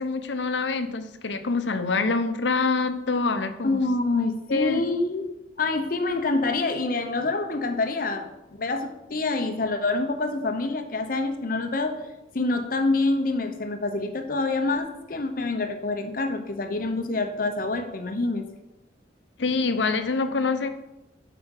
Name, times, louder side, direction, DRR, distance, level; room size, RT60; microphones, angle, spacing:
voice 1, 0.0-3.8 4.5-4.8 19.4-20.7, left 4 dB, 85° left, 9 dB, 0.8 m, -25 dB
voice 2, 3.6-5.3 5.6-8.3 8.6-12.0 12.3-18.4, left 3 dB, 50° left, 6 dB, 0.8 m, -26 dB
7.3 x 5.1 x 6.4 m, 0.95 s
head